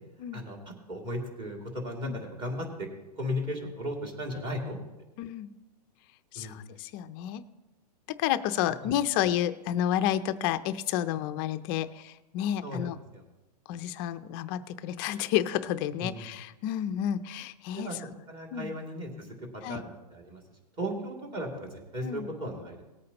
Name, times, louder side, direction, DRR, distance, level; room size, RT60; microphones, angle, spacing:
voice 1, 0.3-2.9 3.2-4.8 6.3-6.6 12.6-13.2 16.0-16.3 17.8-18.0 18.3-19.3 19.7-20.4 20.8-22.8, equal, 25° right, 0 dB, 2.7 m, -36 dB
voice 2, 5.2-5.5 6.3-7.4 8.1-13.0 13.7-18.1 18.5-18.7 19.6-19.8 22.0-22.3, left 11 dB, 35° left, 11 dB, 0.5 m, -30 dB
19.0 x 8.5 x 3.0 m, 1.0 s
hypercardioid pair, 145°, 21 cm